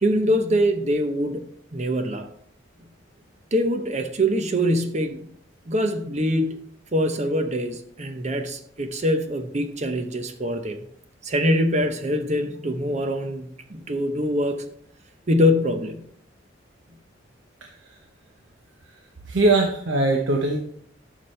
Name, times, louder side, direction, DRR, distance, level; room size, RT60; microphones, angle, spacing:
voice 1, 0.0-1.5 1.7-2.3 3.5-5.3 5.7-6.6 6.9-10.8 11.2-14.6 15.3-16.0, equal, 35° right, 0.8 m, -24 dB
voice 2, 19.3-20.6, right 2 dB, 75° right, 1.0 m, -20 dB
11.0 x 6.0 x 3.2 m
head